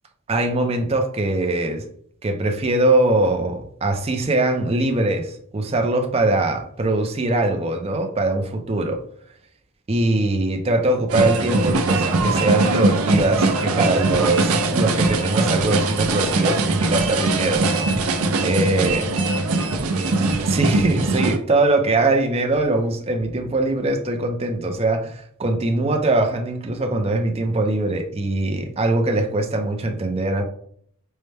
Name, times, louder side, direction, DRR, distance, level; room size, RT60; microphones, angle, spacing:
voice 1, 0.3-1.8 2.2-9.0 9.9-19.1 20.4-30.4, right 2 dB, 25° right, 0.5 m, -22 dB
sound 1, 11.1-21.4, right 3 dB, 80° right, 0.5 m, -21 dB
5.5 x 2.1 x 3.2 m
head